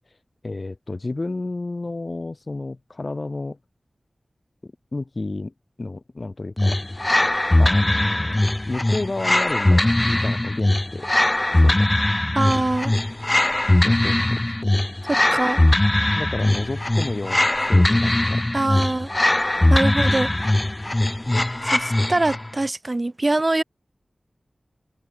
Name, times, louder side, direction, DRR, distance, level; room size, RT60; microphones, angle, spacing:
voice 1, 0.4-3.6 4.6-5.5 5.8-6.8 7.6-11.1 11.6-11.9 13.8-14.8 16.1-18.4, left 2 dB, 50° left, 3.1 m, -31 dB
sound 1, 6.6-22.5, left 1 dB, 25° left, 0.7 m, -20 dB
voice 2, 12.3-12.9 15.1-15.6 18.5-19.1 19.7-20.3 21.6-23.6, right 2 dB, 40° right, 1.7 m, -23 dB
cardioid pair, 45°, 0 cm